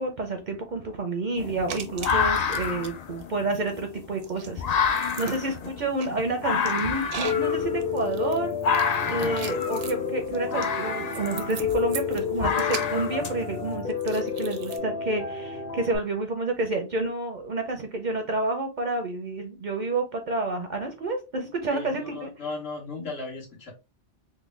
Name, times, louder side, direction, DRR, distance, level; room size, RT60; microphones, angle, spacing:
voice 1, 0.0-8.6 9.1-22.3 23.0-23.1, right 2 dB, 55° right, 5 dB, 0.6 m, -29 dB
sound 1, 1.4-13.7, left 6 dB, 65° left, 0.4 m, -29 dB
sound 2, 1.7-2.9 3.2-14.8, right 8 dB, 75° right, 0.9 m, -40 dB
Piano, 7.2-16.0, left 6 dB, 45° left, 1.0 m, -30 dB
voice 2, 9.1-9.4 21.7-23.7, left 3 dB, 85° left, -2 dB, 1.7 m, -36 dB
3.7 x 2.1 x 3.1 m, 0.27 s
omnidirectional pair, 1.2 m